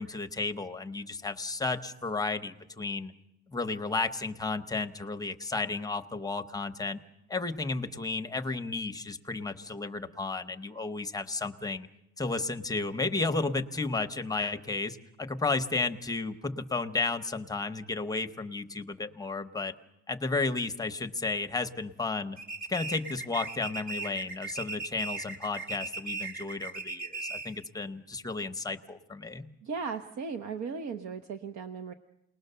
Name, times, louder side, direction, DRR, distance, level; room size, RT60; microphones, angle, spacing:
voice 1, 0.0-3.1 3.5-7.0 7.3-11.9 12.2-19.7 20.1-22.4 22.7-29.5, left 3 dB, 10° left, 8 dB, 0.8 m, -33 dB
sound 1, 22.4-27.6, right 3 dB, 25° right, 2.2 m, -38 dB
voice 2, 29.6-31.9, right 5 dB, 60° right, 9 dB, 1.1 m, -36 dB
29.0 x 20.0 x 6.8 m, 0.88 s
cardioid pair, 170°, 31 cm